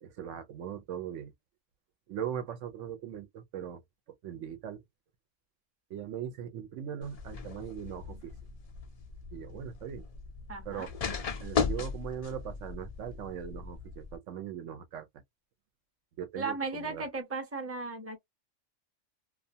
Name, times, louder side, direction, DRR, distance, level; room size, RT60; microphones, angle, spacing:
voice 1, 0.0-1.3 2.1-3.8 4.1-4.8 5.9-8.3 9.3-10.1 10.7-10.9 11.4-15.1 16.2-17.1, right 9 dB, 75° right, 0.9 m, -40 dB
sound 1, 7.0-14.2, left 5 dB, 65° left, 0.3 m, -37 dB
voice 2, 10.5-10.9 16.4-18.2, right 3 dB, 15° right, 0.6 m, -36 dB
2.3 x 2.3 x 2.6 m
omnidirectional pair, 1.3 m